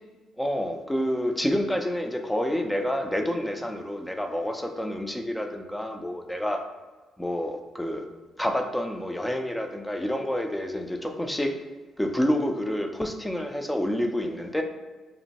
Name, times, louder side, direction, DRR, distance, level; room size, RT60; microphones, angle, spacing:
voice 1, 0.4-6.6 7.2-8.0 8.4-11.5 12.0-14.6, equal, 5° left, 4 dB, 0.3 m, -28 dB
2.9 x 2.1 x 2.8 m, 1.3 s
cardioid pair, 90°, 0 cm